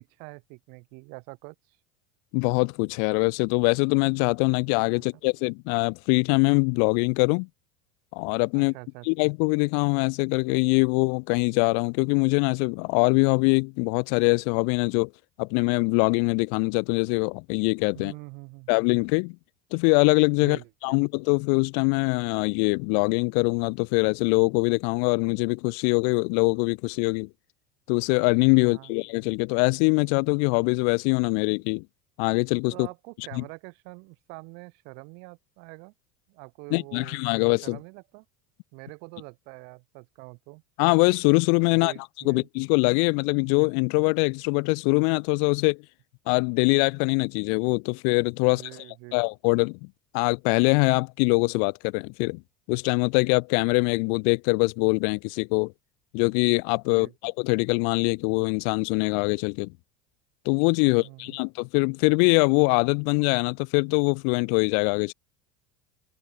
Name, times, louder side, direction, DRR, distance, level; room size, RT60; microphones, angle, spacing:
voice 1, 0.0-1.8 4.9-5.0 8.5-9.1 17.9-18.7 20.4-21.0 28.6-28.9 32.7-35.9 36.3-37.2 37.6-38.3 38.7-40.6 41.7-42.5 48.4-49.1 56.9-57.1 60.8-61.4, right 33 dB, 65° right, 5.9 m, -45 dB
voice 2, 2.3-7.5 8.1-8.7 9.1-15.1 15.4-18.1 18.7-19.4 19.7-27.3 27.9-31.8 32.2-32.9 33.3-33.4 36.7-37.8 40.8-41.9 42.2-45.8 46.3-48.6 49.1-49.8 50.1-52.4 52.7-55.7 56.1-59.7 60.5-65.1, left 40 dB or more, 65° left, 0.6 m, -23 dB
supercardioid pair, 145°, 19 cm